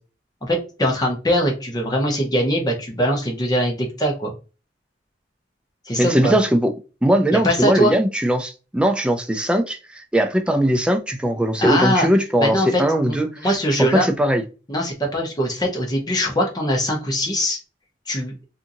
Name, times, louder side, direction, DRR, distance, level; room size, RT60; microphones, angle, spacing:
voice 1, 0.4-4.3 5.9-6.3 7.3-7.9 11.6-12.1 12.4-12.8 13.1-14.1 14.7-17.6 18.1-18.3, equal, 20° left, 0.8 m, -21 dB
voice 2, 6.0-6.7 7.0-13.3 13.8-14.4, right 1 dB, 5° right, 0.3 m, -19 dB
2.7 x 2.5 x 2.6 m
head